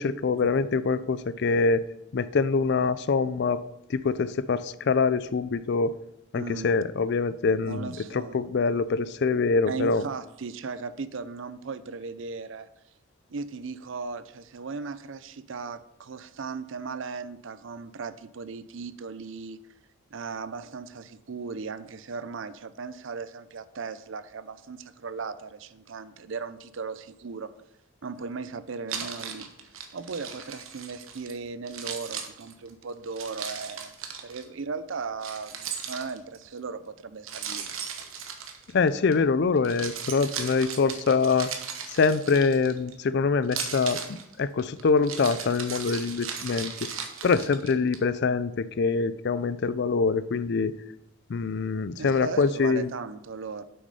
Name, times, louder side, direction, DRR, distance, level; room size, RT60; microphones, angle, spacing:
voice 1, 0.0-1.8 2.1-3.6 3.9-5.9 6.3-10.0 38.7-41.5 41.9-44.0 44.4-46.9 47.2-50.7 51.3-52.9, left 4 dB, 55° left, 16 dB, 0.4 m, -24 dB
voice 2, 6.3-6.7 7.6-8.5 9.6-12.7 13.3-19.6 20.1-27.5 28.0-29.5 29.9-33.9 34.2-37.7 52.0-53.6, right 4 dB, 65° right, 14 dB, 0.5 m, -37 dB
Keys jangling, 28.9-31.3 31.7-34.4 35.2-36.4 37.3-39.1 39.6-42.9 43.4-48.0, right 7 dB, 80° right, 1.2 m, -37 dB
7.9 x 6.2 x 5.5 m, 0.82 s
head